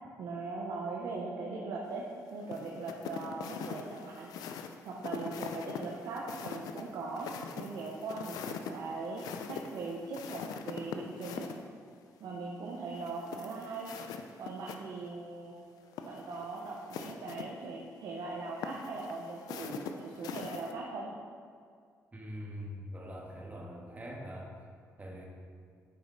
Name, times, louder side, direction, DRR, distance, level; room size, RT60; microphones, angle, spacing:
voice 1, 0.2-2.0 2.3-4.3 4.8-7.3 7.5-9.2 9.5-11.5 12.2-13.9 14.4-15.5 16.0-21.1, right 3 dB, 80° right, -3 dB, 0.8 m, -40 dB
sound 1, 2.5-11.6 12.9-14.8 15.1-15.2 15.8-17.4 18.6-20.7, left 6 dB, 90° left, 0.4 m, -43 dB
voice 2, 22.1-24.5 25.0-25.3, equal, 25° right, -1 dB, 1.5 m, -43 dB
8.1 x 5.2 x 4.0 m, 2.1 s
cardioid pair, 75°, 6 cm